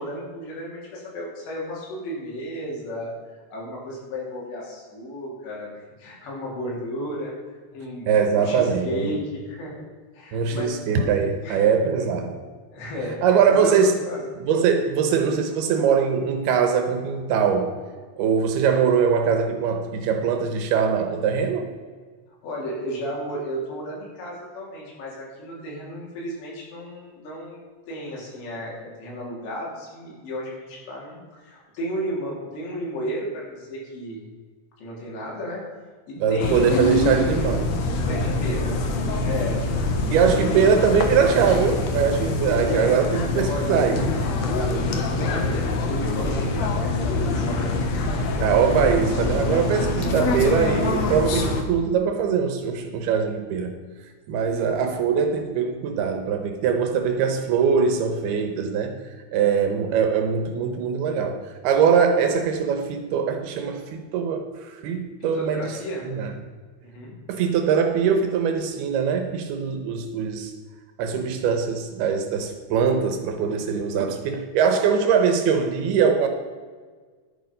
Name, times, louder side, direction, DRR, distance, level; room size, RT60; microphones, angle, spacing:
voice 1, 0.0-7.3 7.7-8.1 8.4-9.9 10.1-11.0 11.4-11.7 12.7-14.3 22.4-34.3 34.8-35.6 36.1-36.8 37.2-37.5 38.1-38.7 39.2-39.7 42.7-43.1 43.4-43.8 44.5-47.7 48.1-48.2 54.4-54.9 65.3-66.1 66.8-67.2, equal, 90° left, -3 dB, 5.4 m, -34 dB
voice 2, 8.1-9.1 10.3-12.4 13.2-14.0 14.4-17.8 18.2-21.7 36.2-37.7 40.1-44.2 48.4-53.8 54.3-59.0 59.3-66.3 67.3-70.5 71.0-76.3, right 6 dB, 75° right, 6 dB, 2.7 m, -22 dB
sound 1, 36.4-51.6, left 2 dB, 70° left, 1.7 m, -24 dB
11.0 x 9.4 x 5.2 m, 1.5 s
omnidirectional pair, 4.9 m